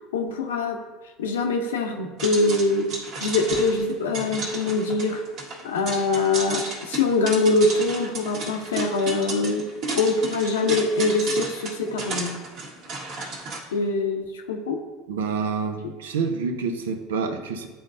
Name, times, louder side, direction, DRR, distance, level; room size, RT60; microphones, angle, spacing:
voice 1, 0.1-0.8 1.2-2.9 3.2-5.2 5.6-12.3 13.7-14.8, left 3 dB, 85° left, 3 dB, 0.8 m, -23 dB
sound 1, 2.2-13.6, right 2 dB, 55° right, 1.6 m, -33 dB
voice 2, 15.1-17.7, right 5 dB, 85° right, 6 dB, 0.6 m, -27 dB
10.0 x 3.8 x 2.6 m, 1.2 s
hypercardioid pair, 80°, 0 cm